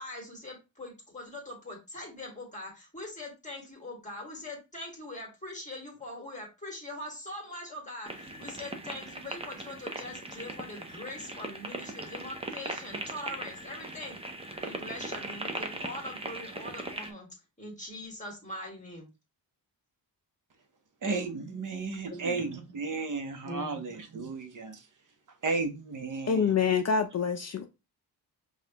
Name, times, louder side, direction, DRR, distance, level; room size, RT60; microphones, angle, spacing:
voice 1, 0.0-14.2 14.6-17.3 17.6-19.1 22.1-22.5 23.4-23.8, left 1 dB, 20° left, 1.7 m, -42 dB
sound 1, 8.1-17.1, right 2 dB, 15° right, 0.6 m, -39 dB
voice 2, 21.0-24.9 25.4-26.6, right 3 dB, 50° right, 0.8 m, -34 dB
voice 3, 26.3-27.7, left 6 dB, 40° left, 0.5 m, -26 dB
5.3 x 2.4 x 2.9 m
wide cardioid pair, 110°, 41 cm